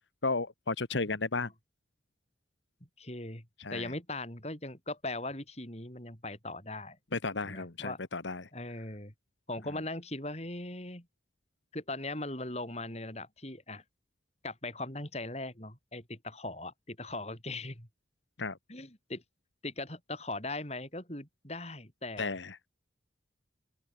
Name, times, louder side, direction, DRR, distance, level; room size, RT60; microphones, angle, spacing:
voice 1, 0.2-1.5 3.6-3.9 7.1-8.5 18.4-18.6 22.2-22.6, left 3 dB, 80° left, 1.6 m, -33 dB
voice 2, 3.0-3.5 3.7-7.0 7.4-8.0 8.5-9.1 9.5-11.1 11.7-13.8 14.4-17.9 18.7-19.2 19.6-22.4, left 2 dB, 35° left, 7.4 m, -39 dB
open air
head